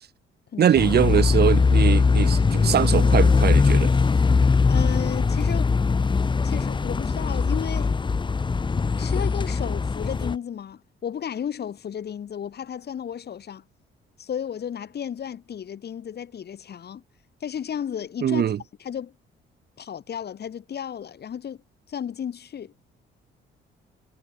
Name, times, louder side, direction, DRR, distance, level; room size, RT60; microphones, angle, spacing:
voice 1, 0.6-3.9 18.2-18.6, right 9 dB, 55° right, 1.1 m, -22 dB
sound 1, 0.8-10.3, left 4 dB, 25° left, 0.8 m, -21 dB
voice 2, 4.7-5.8 6.4-8.0 9.0-13.7 14.2-17.0 17.4-18.4 18.8-19.1 19.8-21.6 21.9-22.7, left 8 dB, 55° left, 3.0 m, -33 dB
cardioid pair, 90°, 20 cm